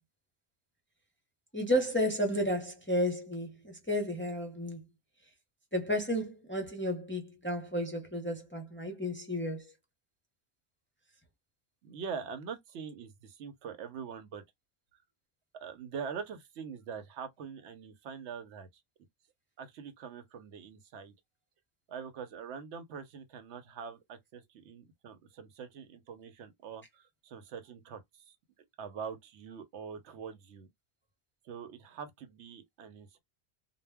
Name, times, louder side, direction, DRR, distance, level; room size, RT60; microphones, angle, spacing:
voice 1, 1.5-4.8 5.7-9.7, equal, 15° left, 0.5 m, -32 dB
voice 2, 11.8-14.4 15.5-18.7 19.6-21.1 21.9-28.4 28.8-30.7 31.4-33.2, right 6 dB, 90° right, 0.9 m, -43 dB
2.1 x 2.1 x 3.4 m
omnidirectional pair, 1.1 m